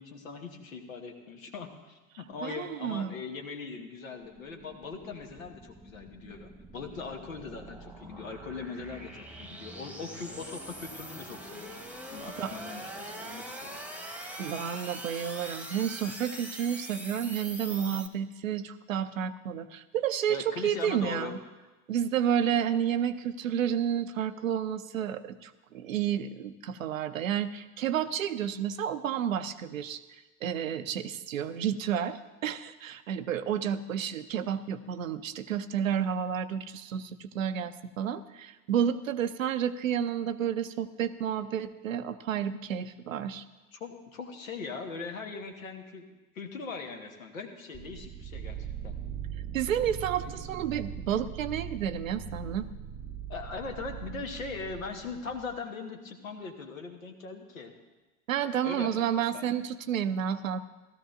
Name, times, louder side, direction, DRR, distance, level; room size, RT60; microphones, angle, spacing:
voice 1, 0.0-11.8 12.1-14.1 20.3-21.3 43.7-46.1 46.3-49.0 50.2-50.3 53.3-57.7 58.6-59.6, left 4 dB, 75° left, 5 dB, 1.2 m, -40 dB
voice 2, 2.4-3.1 12.4-12.5 14.4-21.4 21.9-30.0 30.4-43.4 49.5-52.7 58.3-60.6, right 9 dB, 75° right, 12 dB, 0.6 m, -31 dB
sound 1, 4.2-18.1, right 1 dB, 5° right, 1.1 m, -43 dB
sound 2, 47.7-55.6, right 9 dB, 20° right, 0.5 m, -40 dB
16.0 x 13.5 x 2.5 m, 1.2 s
figure-of-eight pair, 60°, 40 cm